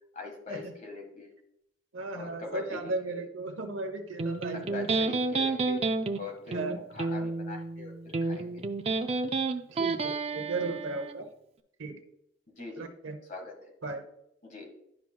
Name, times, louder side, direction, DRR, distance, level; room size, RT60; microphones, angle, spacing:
voice 1, 0.1-1.3 2.1-2.9 4.5-5.8 6.1-8.6 10.6-10.7 12.6-12.8 13.3-13.7 14.4-14.7, left 3 dB, 40° left, 1 dB, 1.6 m, -42 dB
voice 2, 1.9-4.9 6.5-6.9 9.7-11.3 11.8-11.9 12.8-13.2 13.8-14.1, right 3 dB, 75° right, 7 dB, 0.9 m, -36 dB
Electric guitar, 4.2-11.2, right 3 dB, 30° right, 0.4 m, -30 dB
11.0 x 5.9 x 2.3 m, 0.78 s
head